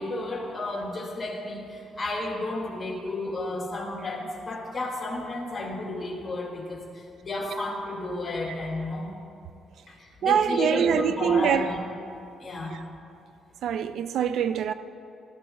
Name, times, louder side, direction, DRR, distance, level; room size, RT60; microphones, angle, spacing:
voice 1, 0.0-6.9 7.2-9.1 9.9-11.8 12.4-12.7, left 2 dB, 30° left, 2.3 m, -32 dB
voice 2, 10.2-11.6 13.6-14.7, right 8 dB, 75° right, 0.3 m, -24 dB
13.0 x 11.5 x 2.3 m
cardioid pair, 90°, 0 cm